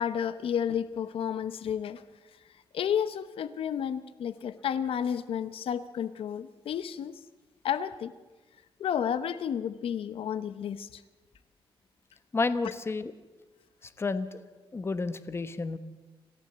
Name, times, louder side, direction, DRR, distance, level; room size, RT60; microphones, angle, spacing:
voice 1, 0.0-2.0 2.7-7.2 7.6-8.1 8.8-11.0, left 8 dB, 80° left, 14 dB, 0.8 m, -31 dB
voice 2, 12.3-13.1 13.8-14.4 14.7-15.8, left 3 dB, 25° left, 12 dB, 1.1 m, -31 dB
27.0 x 14.5 x 7.9 m, 1.2 s
wide cardioid pair, 135°, 9 cm